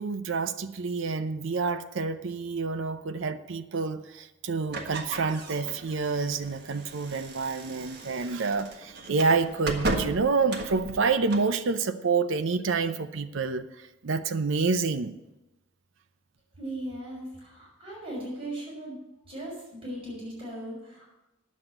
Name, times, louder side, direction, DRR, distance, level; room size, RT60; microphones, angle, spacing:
voice 1, 0.0-15.1, right 4 dB, 70° right, 9 dB, 0.6 m, -28 dB
sound 1, 4.7-11.6, right 2 dB, 55° right, 1.5 m, -36 dB
voice 2, 16.6-19.0 19.3-21.1, right 1 dB, 30° right, -5 dB, 4.7 m, -38 dB
9.9 x 7.4 x 7.8 m, 0.97 s
head